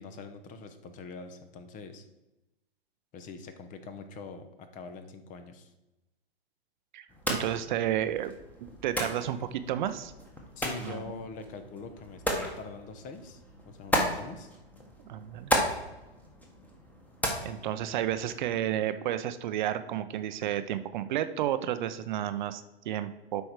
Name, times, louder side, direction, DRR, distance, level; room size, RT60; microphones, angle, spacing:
voice 1, 0.0-2.0 3.1-5.7 10.5-14.5, left 4 dB, 25° left, 9 dB, 0.9 m, -44 dB
voice 2, 6.9-8.3 8.8-10.1 10.8-11.2 15.0-15.5 17.4-23.4, right 11 dB, 50° right, 11 dB, 0.6 m, -31 dB
sound 1, 7.1-18.6, equal, 5° left, 1.3 m, -35 dB
8.2 x 5.3 x 4.6 m, 0.99 s
hypercardioid pair, 115°, 31 cm